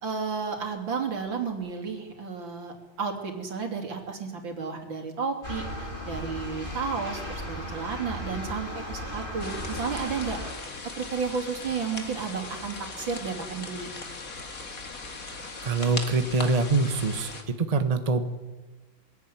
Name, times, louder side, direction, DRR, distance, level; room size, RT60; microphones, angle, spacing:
voice 1, 0.0-10.4 11.0-13.9, right 5 dB, 65° right, 3 dB, 3.7 m, -32 dB
sound 1, 5.4-10.5, left 1 dB, 25° left, 5.7 m, -36 dB
sound 2, 9.4-17.4, left 3 dB, 45° left, 2.4 m, -39 dB
voice 2, 15.6-17.3 17.7-18.3, right 3 dB, 25° right, 8 dB, 1.1 m, -24 dB
22.0 x 17.0 x 9.3 m, 1.2 s
omnidirectional pair, 2.2 m